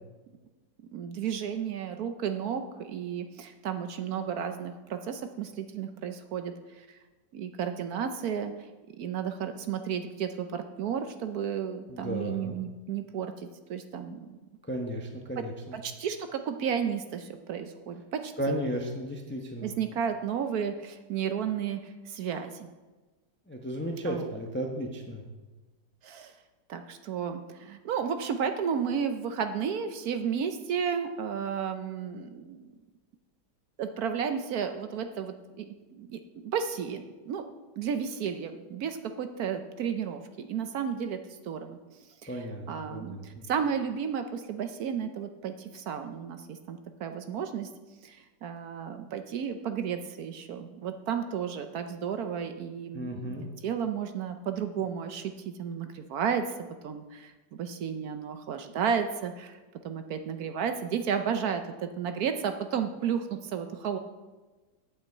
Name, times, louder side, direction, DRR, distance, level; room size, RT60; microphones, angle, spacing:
voice 1, 0.9-7.0 7.3-8.7 9.0-14.4 15.4-15.5 15.7-18.5 19.6-22.7 24.1-24.3 26.0-26.3 26.7-32.7 33.8-37.4 37.8-47.7 48.0-56.5 56.8-59.6 59.8-64.0, right 7 dB, 65° right, 8 dB, 1.1 m, -33 dB
voice 2, 11.9-12.5 14.6-15.8 18.4-19.7 23.5-25.2 42.3-43.5 52.9-53.5, equal, 10° left, 2 dB, 0.6 m, -34 dB
8.4 x 5.6 x 7.9 m, 1.2 s
omnidirectional pair, 1.9 m